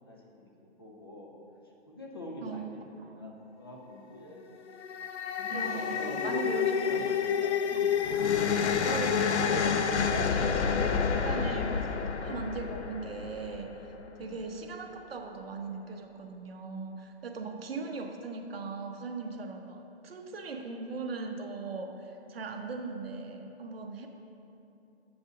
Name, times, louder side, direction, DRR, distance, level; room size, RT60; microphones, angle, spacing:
voice 1, 0.1-0.5 0.8-1.3 1.9-2.8 3.1-4.5 5.4-6.3 6.8-7.8 14.0-14.3, left 1 dB, 20° left, -3 dB, 0.5 m, -45 dB
voice 2, 2.4-3.2 5.5-6.8 7.7-7.9 8.8-13.7 14.2-24.1, right 4 dB, 60° right, 4 dB, 0.9 m, -39 dB
sound 1, 4.7-14.0, left 6 dB, 80° left, 0.7 m, -29 dB
8.1 x 5.3 x 6.0 m, 2.9 s
hypercardioid pair, 170°, 33 cm